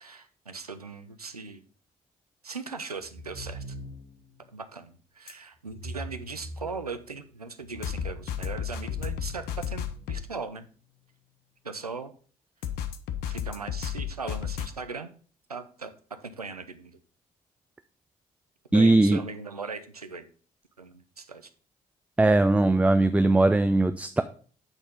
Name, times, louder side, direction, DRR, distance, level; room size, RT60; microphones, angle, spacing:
voice 1, 0.0-1.6 2.4-3.8 4.5-10.7 11.6-12.1 13.2-15.1 15.5-15.9 16.2-17.0 18.7-20.3 20.8-21.5, right 4 dB, 90° right, 10 dB, 0.4 m, -39 dB
sound 1, 3.0-4.3 5.7-7.1 7.6-10.1, equal, 80° left, 3.1 m, -42 dB
sound 2, 5.3-5.4 7.8-10.2 12.6-14.7, left 9 dB, 60° left, 0.7 m, -32 dB
voice 2, 18.7-19.2 22.2-24.2, right 2 dB, 5° right, 10 dB, 0.4 m, -20 dB
7.9 x 4.1 x 5.1 m, 0.42 s
figure-of-eight pair, 45°, 19 cm